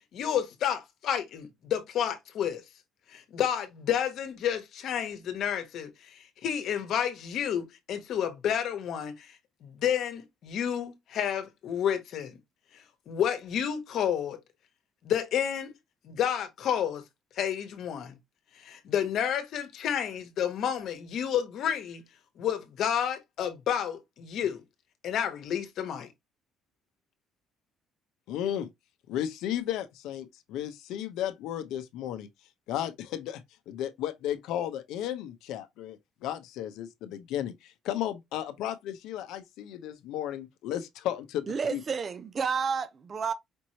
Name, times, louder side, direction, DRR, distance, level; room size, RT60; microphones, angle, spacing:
voice 1, 0.1-2.6 3.1-9.3 9.6-12.4 13.1-14.4 15.0-15.7 16.0-17.0 17.4-18.1 18.6-22.0 22.4-24.6 25.0-26.1, left 9 dB, 55° left, 1.1 m, -30 dB
voice 2, 28.3-28.7 29.1-32.3 32.7-41.8, left 11 dB, 75° left, 0.7 m, -34 dB
voice 3, 41.5-43.3, right 6 dB, 30° right, 0.4 m, -30 dB
5.2 x 3.1 x 2.8 m
cardioid pair, 150°, 0 cm